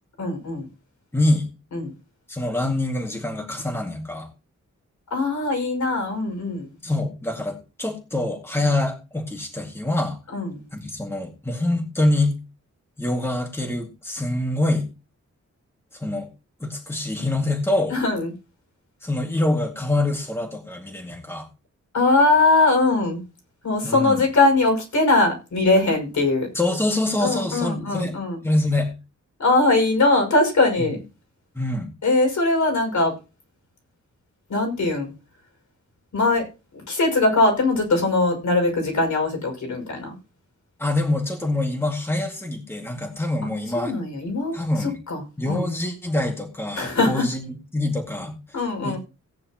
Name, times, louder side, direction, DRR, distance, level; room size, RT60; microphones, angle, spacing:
voice 1, 0.2-0.7 1.7-1.9 5.1-6.7 10.3-10.6 17.9-18.3 21.9-23.2 23.6-26.5 27.2-28.4 29.4-31.0 32.0-33.2 34.5-35.1 36.1-36.4 36.9-40.1 43.7-45.7 46.8-47.3 48.5-49.0, left 2 dB, 75° left, 5.8 m, -21 dB
voice 2, 1.1-1.5 2.3-4.3 6.8-10.2 10.7-12.4 13.0-14.9 15.9-16.3 16.6-18.0 19.0-21.5 23.8-24.2 26.5-28.1 28.4-28.9 31.6-31.9 40.8-43.9 44.5-45.0 45.4-47.4 47.7-48.4 48.8-49.0, left 2 dB, 10° left, 2.1 m, -25 dB
17.5 x 9.6 x 3.0 m
wide cardioid pair, 165°, 29 cm